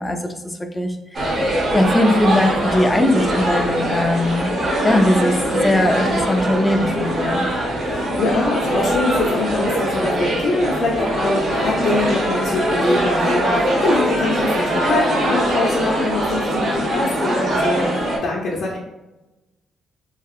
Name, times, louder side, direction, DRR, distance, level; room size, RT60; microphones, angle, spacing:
voice 1, 0.0-4.5 4.8-7.5, left 1 dB, 15° left, 5 dB, 0.4 m, -20 dB
sound 1, 1.1-18.2, right 1 dB, 55° right, 0.9 m, -21 dB
voice 2, 7.8-18.8, left 2 dB, 65° left, -3 dB, 0.6 m, -23 dB
2.9 x 2.7 x 2.4 m, 1.0 s
cardioid pair, 90°, 0 cm